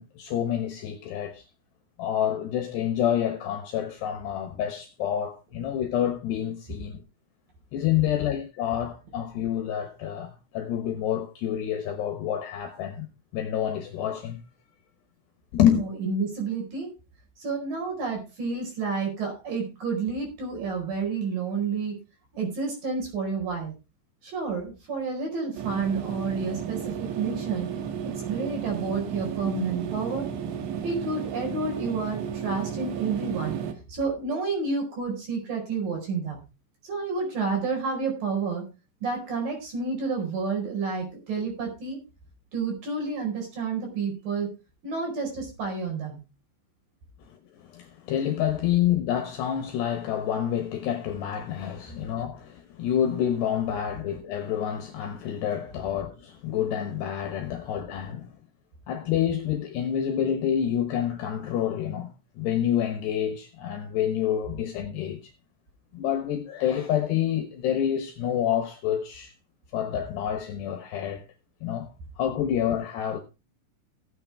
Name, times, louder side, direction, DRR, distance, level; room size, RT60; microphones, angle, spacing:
voice 1, 0.0-1.4 2.0-7.0 7.7-14.4 15.5-15.9 47.3-47.4 47.6-58.3 58.9-65.2 65.9-69.3 69.7-71.2 71.6-71.9 72.2-73.2, left 10 dB, 70° left, 2.8 m, -28 dB
voice 2, 15.8-16.9 17.4-22.0 22.3-23.7 24.2-27.7 28.0-30.3 30.8-33.6 33.9-36.4 36.8-38.6 39.0-42.0 42.5-44.5 44.8-46.2, right 4 dB, 45° right, 6.2 m, -30 dB
sound 1, 25.6-33.7, right 8 dB, 75° right, 4.0 m, -33 dB
16.0 x 8.8 x 3.5 m
omnidirectional pair, 5.9 m